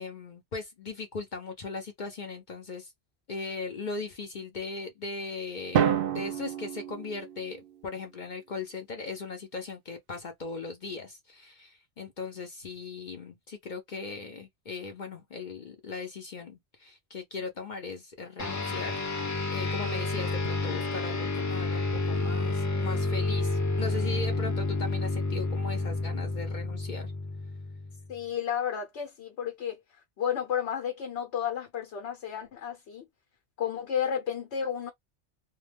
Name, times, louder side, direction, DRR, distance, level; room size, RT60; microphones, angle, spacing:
voice 1, 0.0-2.9 3.3-19.0 19.5-27.1, left 4 dB, 50° left, 0.7 m, -38 dB
Drum, 5.7-7.8, right 8 dB, 60° right, 0.7 m, -29 dB
sound 1, 18.4-28.1, left 2 dB, 30° left, 0.3 m, -30 dB
voice 2, 28.1-29.8 30.2-33.1 33.6-34.9, left 8 dB, 75° left, 1.0 m, -32 dB
2.2 x 2.2 x 3.3 m
omnidirectional pair, 1.2 m